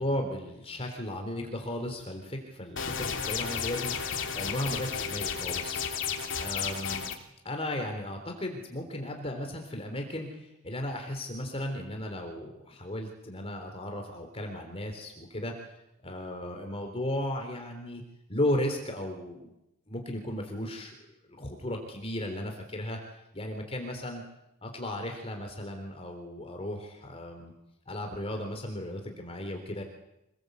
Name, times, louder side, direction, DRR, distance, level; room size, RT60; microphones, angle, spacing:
voice 1, 0.0-3.9 4.3-5.8 6.4-7.1 7.4-10.3 10.6-15.5 16.0-18.0 18.3-19.5 19.9-20.9 21.3-23.0 23.3-24.2 24.6-27.5 27.9-29.8, left 1 dB, 30° left, 4 dB, 3.7 m, -35 dB
sound 1, 2.8-7.1, left 6 dB, 65° left, 3.2 m, -33 dB
26.5 x 21.5 x 8.2 m, 0.87 s
head